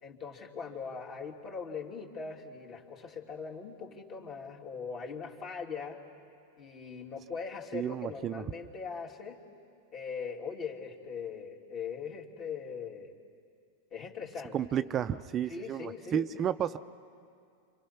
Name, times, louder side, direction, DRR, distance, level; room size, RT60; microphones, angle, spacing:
voice 1, 0.0-6.0 6.6-9.4 9.9-13.2 13.9-15.0 15.5-16.3, left 5 dB, 40° left, 0 dB, 2.8 m, -41 dB
voice 2, 7.7-8.4 14.5-16.8, right 9 dB, 30° right, 10 dB, 0.5 m, -32 dB
28.5 x 26.0 x 5.8 m, 2.4 s
hypercardioid pair, 105°, 0 cm